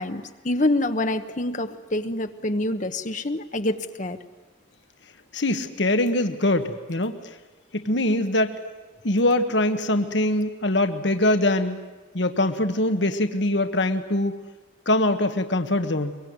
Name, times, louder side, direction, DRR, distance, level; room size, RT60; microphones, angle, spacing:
voice 1, 0.0-4.2, left 1 dB, 40° left, 8 dB, 1.1 m, -26 dB
voice 2, 5.3-7.2 7.7-8.5 9.0-11.8 12.1-14.3 14.9-16.2, left 1 dB, 60° left, 7 dB, 1.5 m, -23 dB
23.5 x 23.0 x 9.6 m, 1.2 s
head